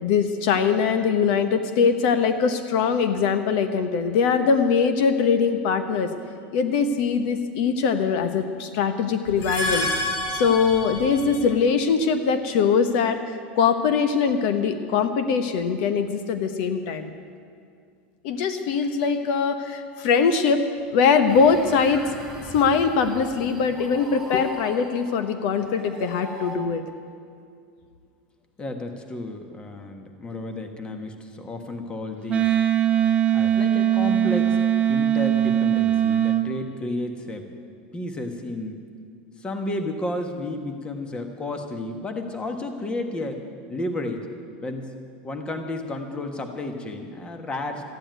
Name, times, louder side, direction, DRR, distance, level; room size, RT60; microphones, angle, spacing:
voice 1, 0.0-6.1 6.5-9.9 10.3-17.1 18.2-20.6 20.9-22.0 22.5-26.8, left 6 dB, 60° left, 9 dB, 1.1 m, -22 dB
sound 1, 9.3-11.5, left 1 dB, 40° left, 2.3 m, -28 dB
sound 2, 21.3-26.6, right 1 dB, ahead, 2.9 m, -41 dB
voice 2, 28.6-32.5 33.3-34.6 34.9-37.5 37.9-38.8 39.4-43.4 43.7-44.3 44.6-44.9 45.2-47.8, left 1 dB, 15° left, 6 dB, 1.4 m, -32 dB
Wind instrument woodwind instrument, 32.3-36.4, right 10 dB, 20° right, 0.8 m, -21 dB
14.0 x 10.0 x 9.3 m, 2.3 s
supercardioid pair, 140°, 6 cm